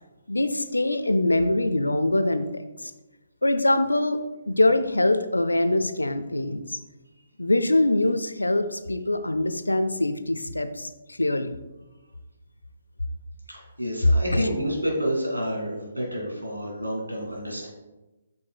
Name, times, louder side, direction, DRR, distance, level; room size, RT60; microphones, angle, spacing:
voice 1, 0.3-2.9 3.4-4.2 4.5-6.8 7.4-11.5 14.3-14.5, left 1 dB, 85° left, 10 dB, 0.5 m, -23 dB
voice 2, 13.5-17.7, equal, 90° right, -1 dB, 2.1 m, -29 dB
7.8 x 5.4 x 2.3 m, 1.1 s
figure-of-eight pair, 135°, 0 cm